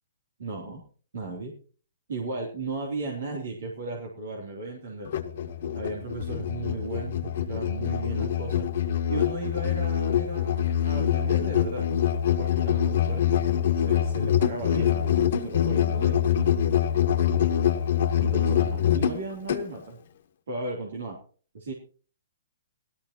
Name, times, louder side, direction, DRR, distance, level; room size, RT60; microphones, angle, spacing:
voice 1, 0.4-0.8 1.1-1.5 2.1-5.1 5.7-11.9 12.2-16.2 18.1-20.0 20.5-21.2 21.5-21.7, right 2 dB, 75° right, -1 dB, 3.3 m, -35 dB
Musical instrument, 5.0-19.7, left 9 dB, 55° left, 1.3 m, -25 dB
17.0 x 13.0 x 3.0 m, 0.40 s
hypercardioid pair, 155°, 0 cm